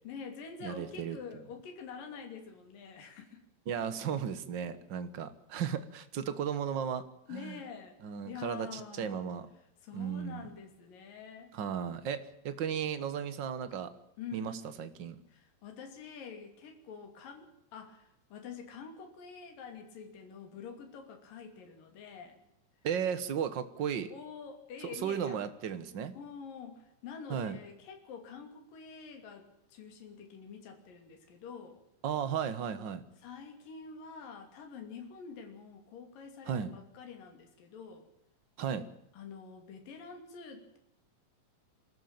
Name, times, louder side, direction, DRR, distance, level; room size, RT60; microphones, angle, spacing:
voice 1, 0.0-3.4 4.6-4.7 7.3-8.0 8.3-9.3 9.8-11.5 14.2-14.8 15.3-22.4 24.1-25.4 26.1-31.8 33.2-38.1 39.1-40.8, left 6 dB, 70° left, 4 dB, 4.5 m, -47 dB
voice 2, 0.6-1.2 3.7-7.0 7.3-7.6 8.0-9.4 9.9-10.5 11.5-13.9 14.3-15.2 22.8-24.1 24.8-26.1 27.3-27.6 32.0-33.0 36.5-36.7 38.6-38.9, right 8 dB, 75° right, 11 dB, 1.0 m, -35 dB
24.0 x 14.0 x 8.8 m, 0.83 s
omnidirectional pair, 4.1 m